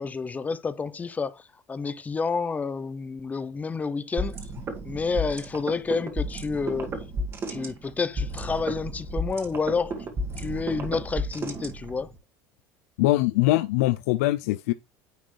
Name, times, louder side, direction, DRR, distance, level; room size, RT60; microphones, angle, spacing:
voice 1, 0.0-1.4 1.7-4.4 4.8-6.9 7.5-9.9 10.4-12.1, left 4 dB, 20° left, 0.6 m, -29 dB
sound 1, 4.2-12.2, right 1 dB, 30° right, 1.6 m, -32 dB
voice 2, 13.0-14.7, left 17 dB, 85° left, 0.4 m, -22 dB
9.4 x 4.2 x 3.2 m
supercardioid pair, 115°, 8 cm